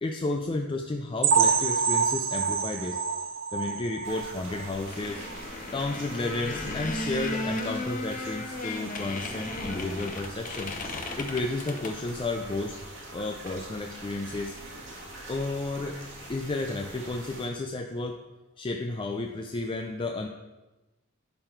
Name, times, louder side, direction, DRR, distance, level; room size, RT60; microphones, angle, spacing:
voice 1, 0.0-3.0 3.5-5.3 5.7-10.7 11.2-12.8 13.1-14.6 15.3-16.0 16.3-18.2 18.6-20.3, left 2 dB, 25° left, 4 dB, 0.4 m, -32 dB
sound 1, 1.2-4.9 5.2-5.4 5.8-5.9 6.3-6.4, right 6 dB, 70° right, 0.7 m, -26 dB
sound 2, 4.0-17.5, right 1 dB, 90° right, 1.8 m, -43 dB
sound 3, 4.9-12.1 12.4-12.5, left 2 dB, 40° left, 0.8 m, -35 dB
10.5 x 3.9 x 4.5 m, 1.1 s
head